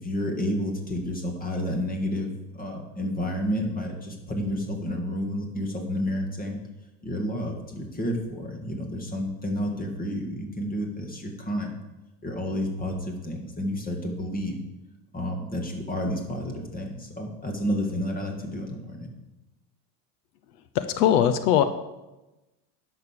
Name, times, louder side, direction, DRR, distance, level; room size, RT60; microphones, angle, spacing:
voice 1, 0.0-2.3 2.5-6.6 7.0-11.7 12.2-14.6 15.1-19.1, equal, 20° left, 3 dB, 2.2 m, -30 dB
voice 2, 20.7-21.6, left 10 dB, 90° left, 11 dB, 0.9 m, -20 dB
10.5 x 6.6 x 6.8 m, 1.0 s
supercardioid pair, 115°, 45 cm